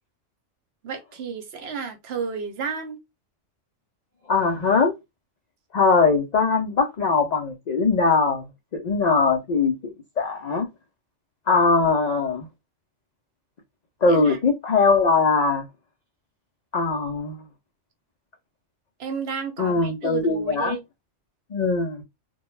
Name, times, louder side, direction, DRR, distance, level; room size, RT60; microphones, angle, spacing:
voice 1, 0.8-3.0 14.1-14.4 19.0-20.8, right 6 dB, 65° right, 0.8 m, -32 dB
voice 2, 4.3-4.9 5.7-8.4 8.7-9.8 10.2-10.7 11.5-12.5 14.0-15.6 16.7-17.4 19.6-20.8 21.5-22.0, left 4 dB, 70° left, 0.4 m, -21 dB
2.2 x 2.2 x 3.0 m
omnidirectional pair, 1.3 m